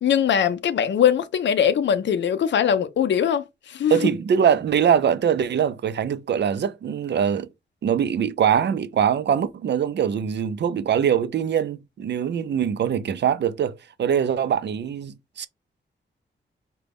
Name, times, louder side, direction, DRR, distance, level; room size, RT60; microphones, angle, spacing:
voice 1, 0.0-4.0, left 8 dB, 70° left, 0.5 m, -21 dB
voice 2, 3.9-7.5 7.8-15.5, right 8 dB, 65° right, 0.4 m, -22 dB
5.0 x 2.2 x 3.4 m
wide cardioid pair, 135°, 19 cm